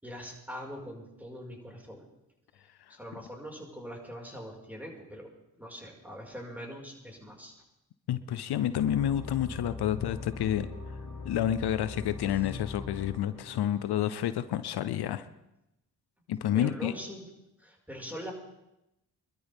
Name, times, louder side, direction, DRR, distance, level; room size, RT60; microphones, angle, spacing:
voice 1, 0.0-2.0 3.0-5.3 5.5-7.5 16.5-17.3 17.6-18.3, equal, 5° right, -1 dB, 5.3 m, -42 dB
voice 2, 8.1-10.7 11.2-15.3 16.3-16.9, left 11 dB, 80° left, 13 dB, 0.7 m, -29 dB
sound 1, 8.8-14.1, left 3 dB, 45° left, 2.2 m, -41 dB
24.0 x 13.0 x 3.6 m, 0.88 s
supercardioid pair, 45°, 39 cm